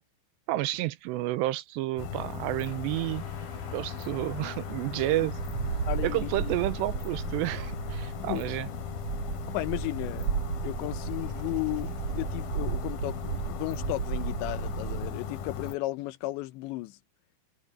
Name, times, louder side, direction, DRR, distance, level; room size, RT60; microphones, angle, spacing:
voice 1, 0.5-3.2 3.7-5.3 6.0-8.7, right 16 dB, 85° right, 2.8 m, -30 dB
sound 1, 2.0-15.8, left 7 dB, 60° left, 3.7 m, -38 dB
sound 2, 2.6-13.6, left 4 dB, 45° left, 1.1 m, -54 dB
Wind, 5.2-15.2, right 7 dB, 50° right, 2.7 m, -34 dB
voice 2, 5.9-6.5 8.2-8.4 9.5-10.3 10.6-17.0, left 18 dB, 85° left, 3.2 m, -34 dB
omnidirectional pair, 5.1 m